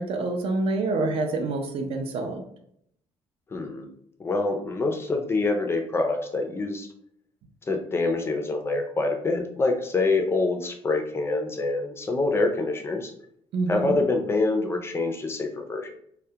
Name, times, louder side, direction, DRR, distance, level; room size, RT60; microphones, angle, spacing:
voice 1, 0.0-2.4 13.5-14.0, right 3 dB, 60° right, 5 dB, 0.4 m, -27 dB
voice 2, 3.5-3.9 4.2-6.9 7.7-13.1 13.7-16.0, left 3 dB, 20° left, 3 dB, 0.4 m, -26 dB
2.3 x 2.0 x 2.7 m, 0.70 s
cardioid pair, 130°, 11 cm